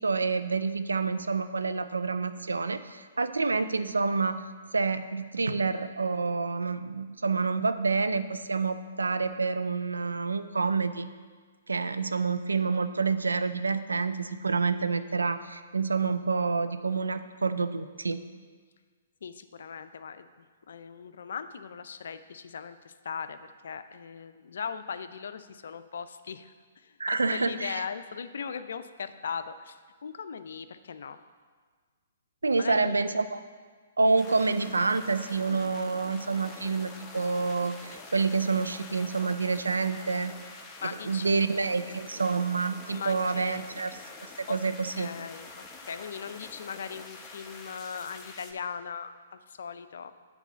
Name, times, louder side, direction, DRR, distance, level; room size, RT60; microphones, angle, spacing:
voice 1, 0.0-4.4 4.7-11.1 11.7-18.2 27.0-27.8 32.4-33.4 34.0-40.3 41.1-43.9 44.4-45.1, right 4 dB, 85° right, 11 dB, 0.4 m, -28 dB
voice 2, 19.2-31.2 32.5-33.0 35.5-35.7 38.0-38.1 40.8-41.5 42.9-43.7 44.5-44.6 44.9-50.1, left 6 dB, 65° left, 11 dB, 0.5 m, -39 dB
sound 1, 34.2-48.5, left 3 dB, 15° left, 0.8 m, -46 dB
8.2 x 4.0 x 6.9 m, 1.6 s
hypercardioid pair, 130°, 0 cm